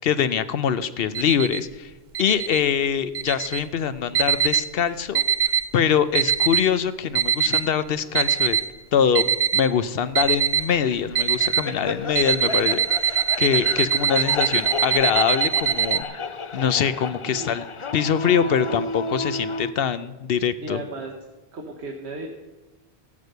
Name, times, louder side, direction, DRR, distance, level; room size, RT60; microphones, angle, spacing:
voice 1, 0.0-1.9 2.2-5.2 5.7-8.6 8.9-9.2 9.5-16.1 16.5-17.6 17.9-20.8, left 8 dB, 65° left, 14 dB, 0.8 m, -23 dB
sound 1, 1.1-1.6 2.1-2.6 3.1-3.6 4.1-4.7 5.1-5.7 6.1-6.7 7.1-7.7 8.1-8.7 9.1-9.7 10.1-10.7 11.1-11.7 12.1-16.0, right 8 dB, 55° right, 0.6 m, -23 dB
sound 2, 10.8-19.7, left 3 dB, 40° left, 0.5 m, -32 dB
voice 2, 17.2-17.5 18.4-18.5 20.6-21.2 21.5-22.3, right 2 dB, 85° right, 1 dB, 1.3 m, -35 dB
13.5 x 8.1 x 6.7 m, 1.1 s
omnidirectional pair, 1.1 m